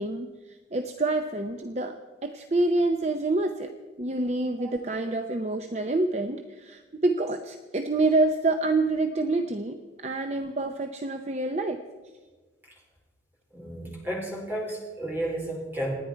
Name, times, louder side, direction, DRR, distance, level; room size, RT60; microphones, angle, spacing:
voice 1, 0.0-2.0 2.2-3.7 4.0-11.8, right 2 dB, 35° right, 6 dB, 0.7 m, -27 dB
voice 2, 13.5-15.9, right 1 dB, 10° right, -2 dB, 4.1 m, -32 dB
27.5 x 10.0 x 4.6 m, 1.3 s
head